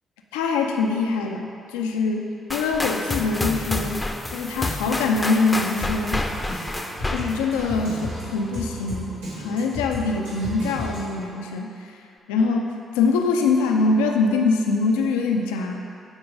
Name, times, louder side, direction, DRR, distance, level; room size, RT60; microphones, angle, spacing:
voice 1, 0.3-4.0 4.3-6.2 7.1-12.0 12.3-15.9, left 4 dB, 80° left, 2 dB, 0.6 m, -24 dB
sound 1, 2.5-8.3, left 1 dB, 20° left, 0.7 m, -29 dB
Drum kit, 5.8-11.3, left 1 dB, 85° right, 2.0 m, -34 dB
8.1 x 4.7 x 5.1 m, 2.4 s
hypercardioid pair, 40°, 0 cm